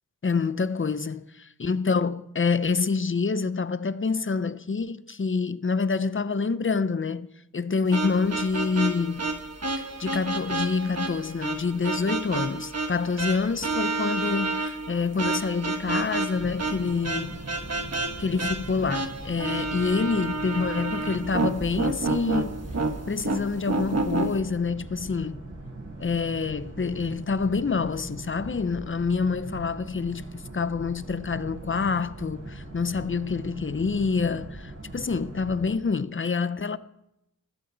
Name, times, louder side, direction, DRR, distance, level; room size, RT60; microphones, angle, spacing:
voice 1, 0.2-1.3 1.6-7.3 7.5-9.3 9.8-17.4 18.2-22.6 23.1-25.4 26.0-36.8, left 4 dB, 35° left, 0.7 m, -27 dB
sound 1, 7.9-24.4, right 3 dB, 50° right, 1.4 m, -30 dB
Boat Water vehicle, 16.3-35.8, right 2 dB, 65° right, 6.8 m, -41 dB
19.5 x 15.5 x 4.0 m
wide cardioid pair, 85°, 33 cm